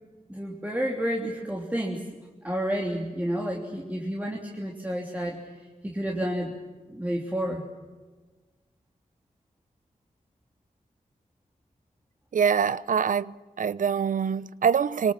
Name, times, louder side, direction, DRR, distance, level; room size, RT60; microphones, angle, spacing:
voice 1, 0.3-2.0 2.4-6.5 6.9-7.6, equal, 10° right, 3.3 m, -30 dB
voice 2, 12.3-15.1, right 7 dB, 70° right, 0.7 m, -24 dB
26.0 x 26.0 x 7.5 m
wide cardioid pair, 130°, 14 cm